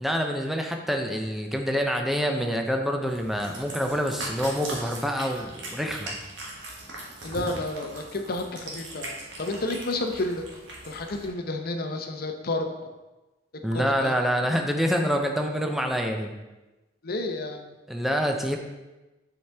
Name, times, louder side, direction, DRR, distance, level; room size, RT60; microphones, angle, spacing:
voice 1, 0.0-6.2 13.6-16.3 17.9-18.6, equal, ahead, 3 dB, 0.6 m, -26 dB
Cat, 3.1-11.3, right 2 dB, 80° right, 1.5 m, -39 dB
voice 2, 7.2-10.4 10.8-12.7 13.7-14.1 17.0-17.8, left 2 dB, 55° left, 5 dB, 0.7 m, -31 dB
7.0 x 4.9 x 3.4 m, 1.1 s
head